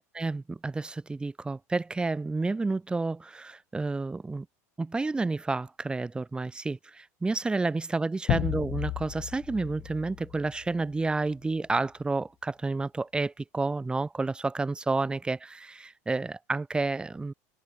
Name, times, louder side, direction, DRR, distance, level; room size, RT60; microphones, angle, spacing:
voice 1, 0.1-4.5 4.8-17.3, right 3 dB, 10° right, 4.2 m, -30 dB
sound 1, 8.3-11.1, left 19 dB, 50° left, 6.4 m, -33 dB
supercardioid pair, 130°, 8 cm